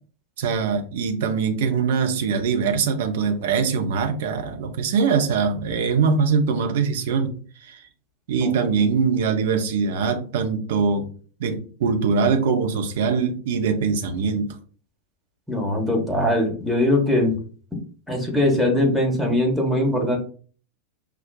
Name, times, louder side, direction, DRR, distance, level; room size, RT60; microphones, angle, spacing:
voice 1, 0.4-7.3 7.6-7.8 8.3-11.0 11.4-14.6, right 5 dB, 55° right, 5 dB, 0.7 m, -22 dB
voice 2, 15.5-17.4 18.1-20.2, left 1 dB, ahead, 1 dB, 1.2 m, -21 dB
5.9 x 2.3 x 2.2 m, 0.41 s
figure-of-eight pair, 90°, 0 cm